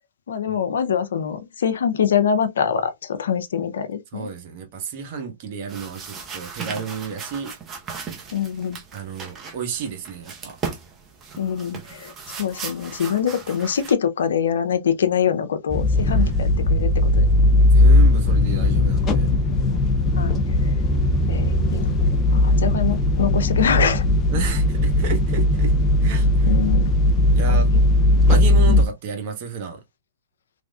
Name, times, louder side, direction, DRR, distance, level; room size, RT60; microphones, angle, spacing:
voice 1, 0.3-4.3 8.3-8.8 11.4-17.7 20.1-20.4 21.3-21.9 22.3-24.0 26.5-26.9 28.7-28.9, left 8 dB, 75° left, 0.5 m, -24 dB
voice 2, 4.1-7.5 8.9-10.6 16.1-16.6 17.7-19.3 24.3-25.7 26.0-26.5 27.3-27.7 28.3-29.8, right 6 dB, 50° right, 1.0 m, -32 dB
sound 1, 5.7-13.9, right 5 dB, 20° right, 0.8 m, -37 dB
sound 2, 15.7-28.8, left 1 dB, 25° left, 0.5 m, -18 dB
3.2 x 2.5 x 2.3 m
hypercardioid pair, 120°, 0 cm